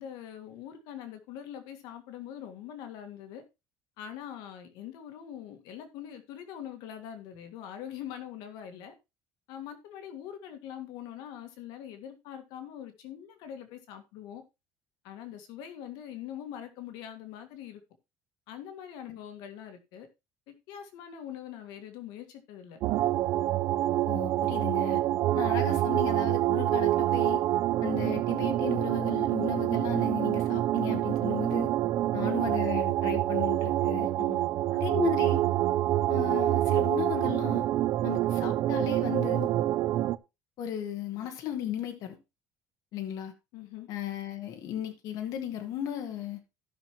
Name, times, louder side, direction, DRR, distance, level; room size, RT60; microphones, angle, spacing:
voice 1, 0.0-3.4 4.0-9.0 9.5-14.4 15.0-17.8 18.5-20.1 20.5-22.8 34.0-34.4 43.5-43.9, left 10 dB, 80° left, 1.8 m, -43 dB
sound 1, 22.8-40.2, right 14 dB, 55° right, 0.5 m, -27 dB
voice 2, 24.1-25.0 25.3-27.4 27.8-31.7 32.1-34.1 34.7-35.4 36.1-37.6 38.0-39.5 40.6-42.2 42.9-43.3 43.9-46.4, left 10 dB, 60° left, 1.7 m, -35 dB
16.0 x 6.0 x 3.1 m
cardioid pair, 155°, 7 cm